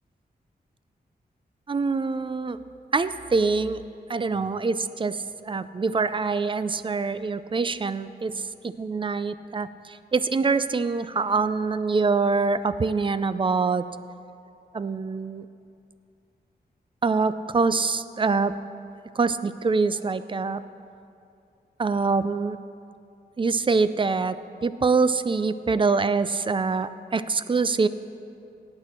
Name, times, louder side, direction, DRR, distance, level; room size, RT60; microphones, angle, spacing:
voice 1, 1.7-2.6 2.9-3.8 4.1-8.4 8.8-13.9 14.7-15.5 17.0-18.5 19.2-20.6 21.8-22.6 23.4-27.9, right 4 dB, 30° right, 13 dB, 0.3 m, -25 dB
17.5 x 8.8 x 4.3 m, 2.6 s
wide cardioid pair, 135°, 17 cm